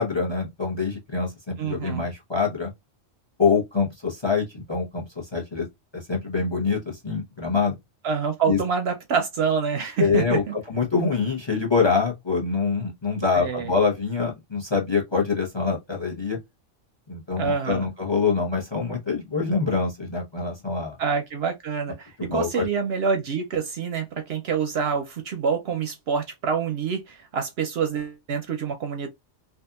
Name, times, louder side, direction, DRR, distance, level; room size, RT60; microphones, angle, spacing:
voice 1, 0.0-2.7 3.4-5.7 5.9-7.7 8.5-8.6 10.0-16.4 17.1-21.0 22.2-22.7, left 5 dB, 25° left, 0.7 m, -25 dB
voice 2, 1.6-2.1 8.0-10.5 13.3-13.7 17.4-17.9 21.0-29.1, right 6 dB, 65° right, 0.7 m, -26 dB
2.7 x 2.4 x 2.3 m
omnidirectional pair, 1.3 m